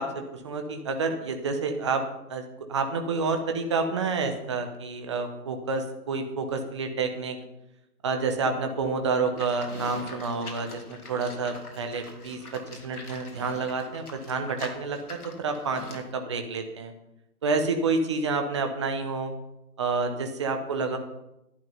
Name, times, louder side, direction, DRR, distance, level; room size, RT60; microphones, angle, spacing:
voice 1, 0.0-2.0 2.3-2.4 2.7-7.4 8.0-16.9 17.4-19.3 19.8-21.0, right 4 dB, 20° right, 5 dB, 0.8 m, -29 dB
Livestock farm animals working animals, 9.4-16.1, left 3 dB, 70° left, 2.6 m, -44 dB
11.5 x 10.0 x 5.5 m, 0.90 s
figure-of-eight pair, 150°, 47 cm